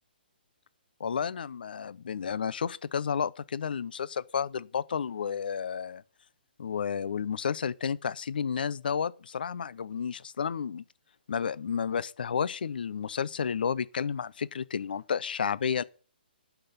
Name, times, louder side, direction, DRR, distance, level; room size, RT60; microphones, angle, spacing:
voice 1, 1.0-6.0 6.6-10.8 11.3-15.8, left 7 dB, 60° left, 0.6 m, -31 dB
12.0 x 6.0 x 8.3 m
hypercardioid pair, 175°, 6 cm